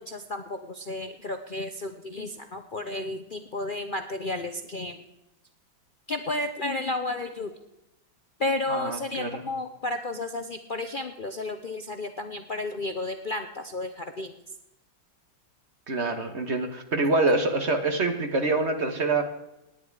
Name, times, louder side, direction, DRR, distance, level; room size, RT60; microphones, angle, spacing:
voice 1, 0.0-5.0 6.1-7.5 8.4-14.3 17.3-17.5, left 2 dB, 85° left, 7 dB, 0.4 m, -32 dB
voice 2, 8.7-9.4 15.9-19.2, right 2 dB, 35° right, 6 dB, 1.5 m, -26 dB
18.0 x 9.9 x 4.8 m, 0.91 s
omnidirectional pair, 2.2 m